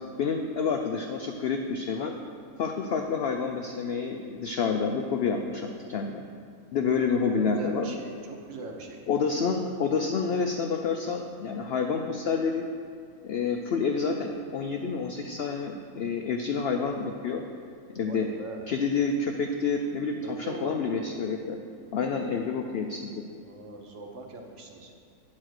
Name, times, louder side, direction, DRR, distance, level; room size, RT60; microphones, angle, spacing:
voice 1, 0.2-2.1 2.6-6.2 6.7-7.9 9.1-12.7 13.2-17.4 17.9-18.3 18.7-21.6 21.9-23.2, left 5 dB, 80° left, 3 dB, 0.5 m, -28 dB
voice 2, 7.0-9.0 18.1-18.6 20.2-21.1 23.4-24.9, right 2 dB, 55° right, 2 dB, 1.1 m, -40 dB
8.9 x 4.3 x 6.4 m, 2.3 s
omnidirectional pair, 1.6 m